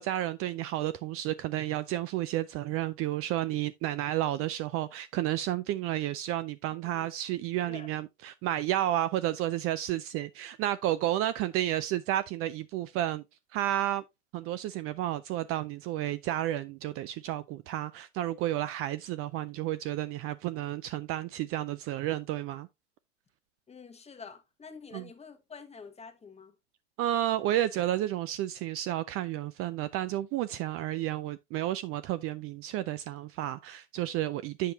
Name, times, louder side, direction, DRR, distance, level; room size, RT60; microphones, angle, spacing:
voice 1, 0.0-13.2 13.5-14.0 14.3-22.7 24.9-25.0 27.0-34.7, right 13 dB, 40° right, 0.4 m, -31 dB
voice 2, 23.7-26.5, left 5 dB, 15° left, 1.3 m, -47 dB
8.0 x 6.5 x 2.8 m
hypercardioid pair, 100°, 37 cm